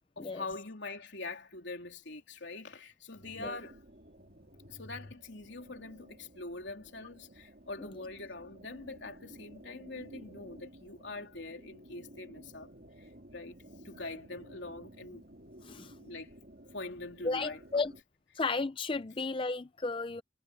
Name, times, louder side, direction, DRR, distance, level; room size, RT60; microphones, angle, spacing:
voice 1, 0.2-3.8 4.7-12.7 13.0-13.6 13.8-15.2 16.0-16.3 16.7-17.9, left 2 dB, 70° left, 3.4 m, -44 dB
sound 1, 3.2-18.0, right 1 dB, 50° right, 4.0 m, -54 dB
voice 2, 17.2-17.9 18.4-20.2, left 3 dB, 25° left, 0.4 m, -33 dB
head